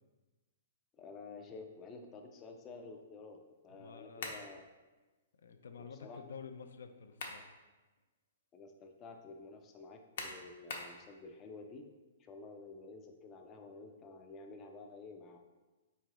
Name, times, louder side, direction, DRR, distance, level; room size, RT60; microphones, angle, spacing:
voice 1, 0.9-4.6 5.8-6.2 8.5-11.9 12.2-15.4, left 3 dB, 15° left, 4 dB, 0.3 m, -51 dB
voice 2, 3.7-4.4 5.4-7.5, left 6 dB, 85° left, 7 dB, 0.4 m, -50 dB
sound 1, 4.2-4.5 6.8-7.5 8.0-8.1 10.2-11.0, left 3 dB, 60° left, 0.7 m, -42 dB
4.5 x 3.1 x 3.7 m, 1.2 s
hypercardioid pair, 165°, 0 cm